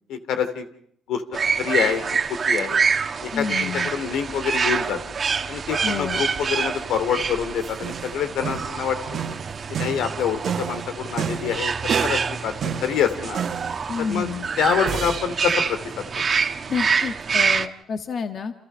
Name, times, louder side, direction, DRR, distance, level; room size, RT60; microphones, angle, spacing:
voice 1, 0.1-0.6 1.1-1.2 1.6-2.0 2.5-2.8 3.2-5.0 5.5-9.2 9.7-11.7 12.0-13.4 14.0-14.3 14.6-16.0, left 8 dB, 85° left, 9 dB, 2.6 m, -26 dB
sound 1, 1.3-17.7, right 5 dB, 45° right, 1.5 m, -26 dB
voice 2, 3.3-3.9 5.8-6.2 13.9-14.8 16.7-18.5, left 6 dB, 55° left, 6 dB, 1.6 m, -29 dB
sound 2, 7.1-12.4 12.6-13.9 14.9-15.4, right 7 dB, 60° right, 1.7 m, -30 dB
29.5 x 27.5 x 5.5 m, 0.67 s
cardioid pair, 90°, 0 cm